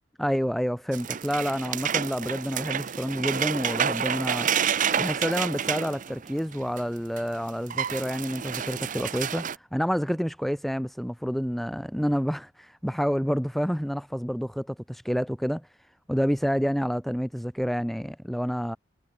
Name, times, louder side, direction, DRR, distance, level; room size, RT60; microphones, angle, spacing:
voice 1, 0.2-4.5 5.0-9.4 9.7-15.6 16.1-18.8, equal, ahead, 3.8 m, -28 dB
sound 1, 0.9-6.8 7.2-7.3 7.5-9.6, right 8 dB, 45° right, 0.6 m, -29 dB
head